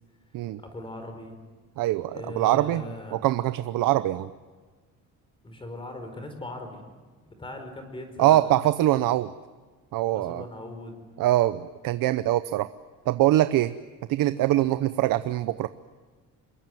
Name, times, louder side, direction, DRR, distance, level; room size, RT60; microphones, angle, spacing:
voice 1, 0.6-1.4 2.1-3.2 5.4-6.8 7.3-8.4 10.1-10.9, left 1 dB, 15° left, 6 dB, 4.6 m, -39 dB
voice 2, 1.8-2.8 3.1-4.3 8.2-9.3 9.9-10.4 11.2-12.7 13.1-13.7 14.1-15.7, right 15 dB, 80° right, 12 dB, 0.8 m, -23 dB
27.5 x 22.0 x 9.4 m, 1.4 s
cardioid pair, 175°, 33 cm